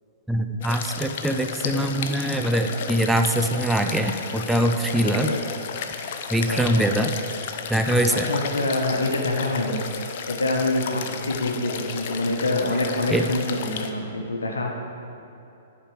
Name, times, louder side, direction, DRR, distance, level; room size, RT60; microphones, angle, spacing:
voice 1, 0.3-5.3 6.3-7.1 7.7-8.3 13.1-13.2, right 1 dB, 5° right, 5 dB, 0.5 m, -23 dB
sound 1, 0.6-13.9, left 6 dB, 55° left, 0.6 m, -33 dB
voice 2, 5.0-5.4 6.5-6.9 8.1-9.8 10.3-14.7, left 2 dB, 80° left, 2 dB, 1.2 m, -26 dB
10.0 x 5.2 x 5.0 m, 2.9 s
figure-of-eight pair, 115°, 0 cm